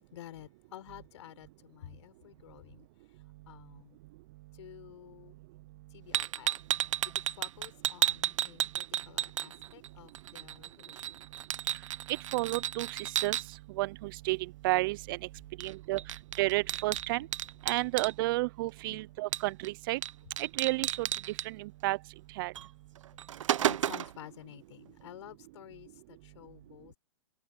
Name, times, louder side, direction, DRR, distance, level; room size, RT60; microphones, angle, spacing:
voice 1, 0.0-2.9 3.5-4.0 4.5-5.4 5.9-6.6 7.0-11.2 18.9-19.1 23.6-27.0, left 12 dB, 60° left, 4.4 m, -51 dB
sound 1, 6.1-9.9 10.1-13.4 15.6-15.7 16.0-18.1 19.3-19.7 20.0-20.1 20.4-21.5 22.5-22.7 23.0-24.2, right 11 dB, 65° right, 1.0 m, -32 dB
voice 2, 12.3-13.4 13.8-15.2 15.6-16.0 16.4-17.3 17.7-20.0 20.4-21.0 21.4-22.0 22.4-22.5, right 20 dB, 40° right, 0.7 m, -31 dB
hypercardioid pair, 135°, 17 cm